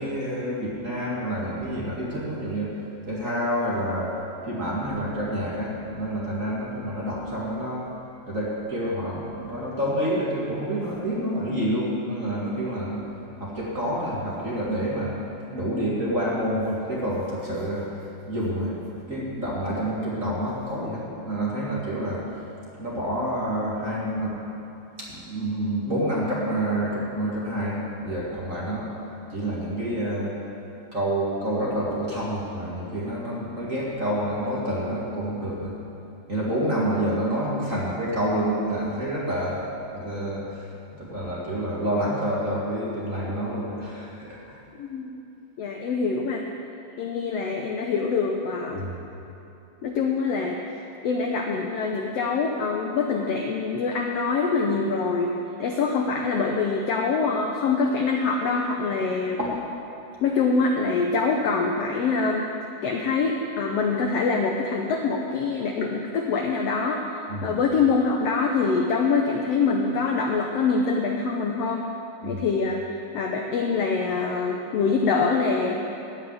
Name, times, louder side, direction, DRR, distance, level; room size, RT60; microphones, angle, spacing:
voice 1, 0.0-2.7 3.1-4.2 4.5-7.9 8.3-13.0 13.4-15.1 15.5-17.9 18.3-22.2 22.8-24.4 25.0-28.9 29.3-30.4 30.9-35.7 36.3-39.6 39.9-44.6 48.7-48.9 59.4-59.6 67.3-67.6 72.2-72.4, right 1 dB, 30° right, -6 dB, 1.8 m, -28 dB
voice 2, 44.8-45.1 45.6-46.4 47.0-48.9 49.8-50.6 51.0-55.3 55.6-59.4 60.2-62.5 62.8-67.0 67.4-71.9 72.2-72.8 73.1-76.1, left 4 dB, 80° left, 1 dB, 1.4 m, -24 dB
16.0 x 5.8 x 9.7 m, 2.8 s
omnidirectional pair, 4.0 m